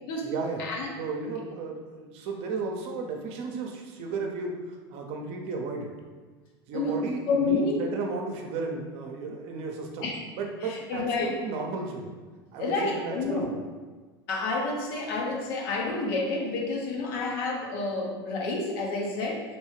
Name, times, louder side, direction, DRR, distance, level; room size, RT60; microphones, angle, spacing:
voice 1, 0.2-0.7 1.0-5.9 6.7-10.1 10.4-12.1 12.5-13.6, right 4 dB, 55° right, 1 dB, 0.7 m, -34 dB
voice 2, 7.3-7.8 10.0-10.2 10.6-11.3 12.6-13.5 14.3-19.4, left 3 dB, 65° left, -1 dB, 0.8 m, -29 dB
3.1 x 3.0 x 3.1 m, 1.4 s
hypercardioid pair, 90°, 13 cm